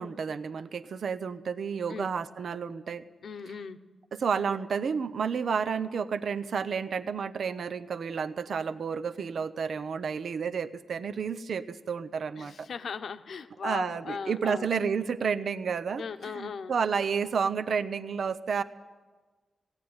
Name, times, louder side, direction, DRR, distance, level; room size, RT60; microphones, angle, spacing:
voice 1, 0.0-3.0 4.1-12.7 13.6-18.6, right 6 dB, 70° right, 12 dB, 0.8 m, -31 dB
voice 2, 3.2-3.8 12.4-14.7 16.0-16.7, left 6 dB, 70° left, 9 dB, 1.0 m, -38 dB
18.0 x 17.0 x 9.6 m, 1.3 s
wide cardioid pair, 120°, 0 cm